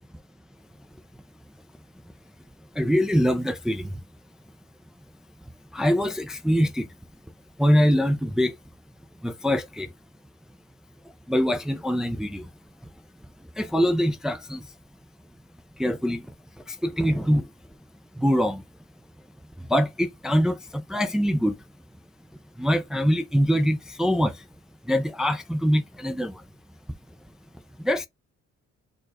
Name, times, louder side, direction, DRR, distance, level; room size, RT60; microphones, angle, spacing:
voice 1, 2.7-4.0 5.7-6.9 7.6-8.6 9.2-9.9 11.3-12.5 13.6-14.7 15.8-16.3 16.7-17.5 18.1-18.6 19.6-21.6 22.6-24.4 24.8-26.4 27.8-28.1, equal, ahead, 0.4 m, -24 dB
4.5 x 2.4 x 4.7 m
cardioid pair, 155°, 30 cm